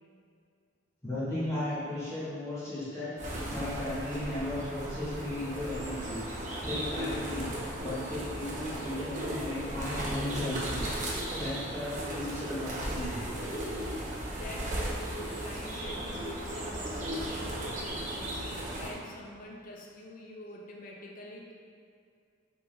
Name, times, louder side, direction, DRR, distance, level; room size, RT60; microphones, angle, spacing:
voice 1, 1.0-13.2 13.6-13.7, left 1 dB, 15° left, -11 dB, 0.9 m, -36 dB
sound 1, 3.2-18.9, right 1 dB, 40° right, 0.7 m, -36 dB
voice 2, 13.8-21.5, left 1 dB, 45° left, -1 dB, 0.5 m, -46 dB
4.2 x 3.5 x 3.2 m, 2.2 s
head